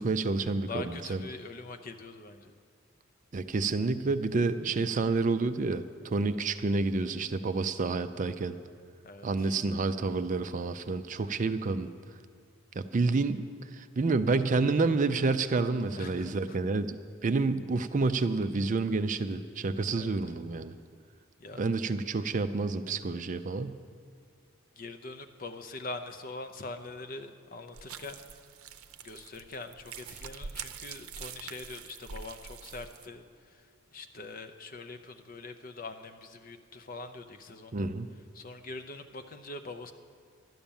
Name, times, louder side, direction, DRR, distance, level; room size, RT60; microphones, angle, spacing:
voice 1, 0.0-0.8 1.1-1.2 3.3-8.5 9.2-11.9 12.8-13.5 13.7-17.0 17.2-20.7 21.6-23.8 37.7-38.1, right 3 dB, 35° right, 10 dB, 0.4 m, -29 dB
voice 2, 0.7-2.5 9.0-9.5 16.0-16.6 19.9-20.4 21.4-21.6 24.8-28.2 29.0-37.9 38.3-39.9, left 3 dB, 40° left, 8 dB, 0.7 m, -43 dB
sound 1, 27.7-33.1, right 6 dB, 85° right, 0.6 m, -45 dB
12.0 x 10.0 x 7.1 m, 2.3 s
head